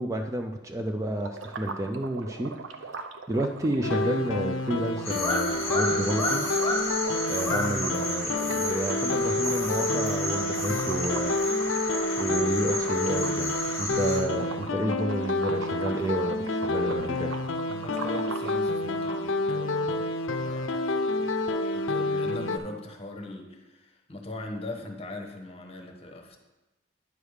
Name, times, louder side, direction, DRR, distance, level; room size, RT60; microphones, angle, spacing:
voice 1, 0.0-2.5 2.8-2.9 3.3-6.5 7.2-11.3 12.2-13.5 13.8-17.3, right 1 dB, 15° right, 4 dB, 0.4 m, -30 dB
sound 1, 1.2-18.6, right 4 dB, 80° right, 0.6 m, -41 dB
sound 2, 3.8-22.6, left 2 dB, 80° left, 0.6 m, -29 dB
sound 3, 5.0-14.2, left 1 dB, 10° left, 1.5 m, -31 dB
voice 2, 17.7-20.1 20.4-21.4 21.7-26.4, left 1 dB, 30° left, 3 dB, 0.9 m, -40 dB
9.8 x 3.4 x 6.3 m, 1.1 s
head